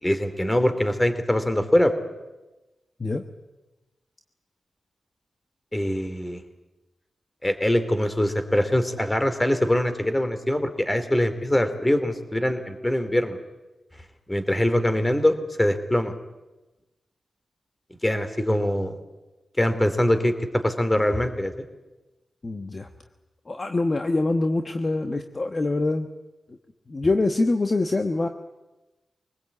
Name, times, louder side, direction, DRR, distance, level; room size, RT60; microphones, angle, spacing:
voice 1, 0.0-1.9 5.7-6.4 7.4-13.4 14.3-16.1 18.0-19.0 19.6-20.3 20.6-21.5, left 1 dB, 15° left, 9 dB, 2.8 m, -23 dB
voice 2, 22.4-22.9 23.5-26.1 26.5-26.6 26.9-28.3, left 2 dB, 35° left, 6 dB, 1.3 m, -24 dB
24.5 x 19.5 x 8.5 m, 1.1 s
cardioid pair, 85°, 0 cm